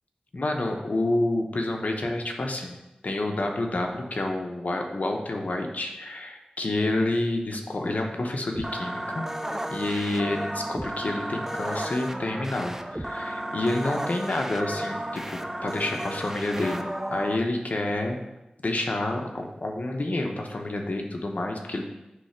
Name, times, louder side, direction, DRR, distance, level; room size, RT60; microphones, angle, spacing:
voice 1, 0.3-2.8 3.0-9.2 9.7-18.2 18.6-21.8, left 2 dB, 65° left, 2 dB, 1.0 m, -29 dB
sound 1, 8.6-17.4, right 1 dB, 15° right, 0.6 m, -33 dB
9.7 x 3.3 x 5.7 m, 0.97 s
wide cardioid pair, 70°, 3 cm